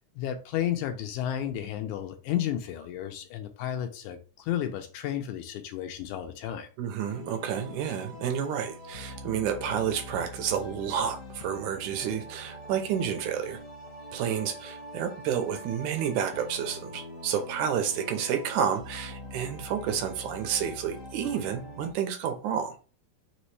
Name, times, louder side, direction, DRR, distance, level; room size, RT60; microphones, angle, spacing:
voice 1, 0.2-6.7, left 11 dB, 80° left, 2.0 m, -32 dB
voice 2, 6.8-13.6 14.1-22.8, right 8 dB, 75° right, 2.0 m, -30 dB
sound 1, 7.1-21.9, left 1 dB, 50° left, 0.9 m, -44 dB
5.3 x 3.1 x 3.1 m
omnidirectional pair, 3.6 m